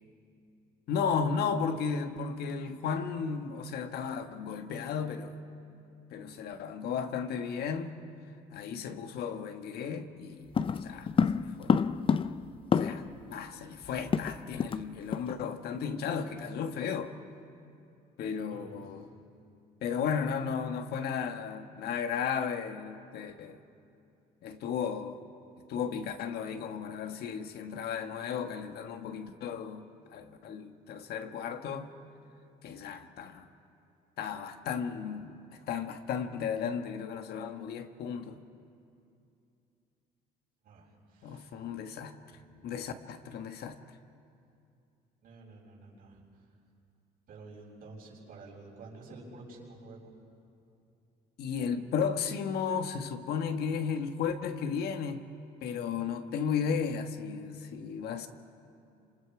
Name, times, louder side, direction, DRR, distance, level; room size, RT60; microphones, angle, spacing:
voice 1, 0.9-5.4 6.1-7.9 8.5-11.8 12.7-17.2 18.2-19.1 19.8-23.6 24.4-25.2 25.7-31.9 32.6-33.5 34.2-38.4 41.2-42.2 42.6-43.8 51.4-55.2 55.6-58.3, left 6 dB, 70° left, 1.4 m, -34 dB
sound 1, 10.5-13.2 13.5-13.6 13.8-14.8 15.1-15.3 15.7-15.9, left 6 dB, 30° left, 0.6 m, -28 dB
voice 2, 18.5-19.0 40.6-41.5 42.3-42.8 45.2-46.2 47.3-50.2, right 3 dB, 60° right, 7.0 m, -50 dB
28.5 x 26.5 x 4.9 m
cardioid pair, 110°, 17 cm